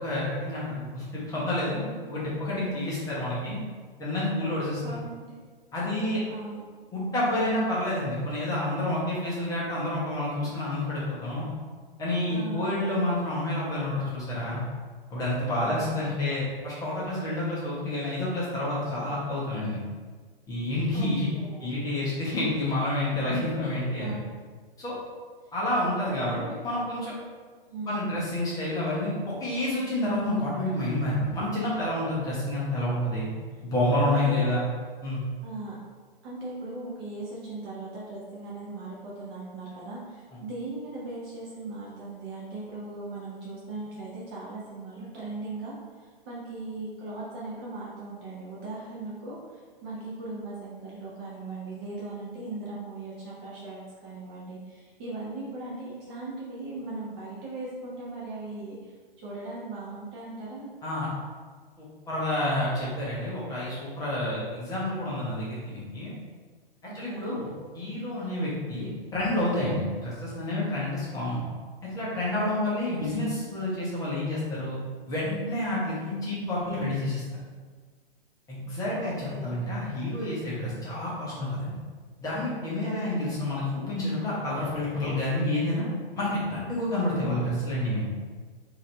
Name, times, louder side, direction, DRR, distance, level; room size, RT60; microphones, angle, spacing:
voice 1, 0.0-1.8 2.1-3.6 4.0-4.8 5.7-6.2 6.9-11.4 12.0-14.6 15.1-19.8 20.5-21.3 21.6-24.2 24.8-24.9 25.5-27.1 27.8-33.3 33.6-34.6 35.0-35.2 60.8-61.1 61.8-66.1 66.9-67.5 67.7-71.4 71.8-74.8 75.1-77.2 78.5-81.7 82.2-85.8 86.1-88.0, left 1 dB, 10° left, -7 dB, 0.9 m, -29 dB
voice 2, 4.8-5.3 6.3-6.6 12.3-12.6 15.6-16.1 20.9-21.7 24.0-24.3 25.4-25.5 26.1-26.5 27.7-28.1 33.5-33.6 33.9-34.5 35.4-35.8 36.2-60.7 66.8-67.4 72.6-73.1 78.9-79.6 82.8-83.3 87.2-87.4, right 2 dB, 25° right, -6 dB, 0.7 m, -39 dB
4.0 x 2.6 x 3.2 m, 1.5 s
figure-of-eight pair, 115°, 29 cm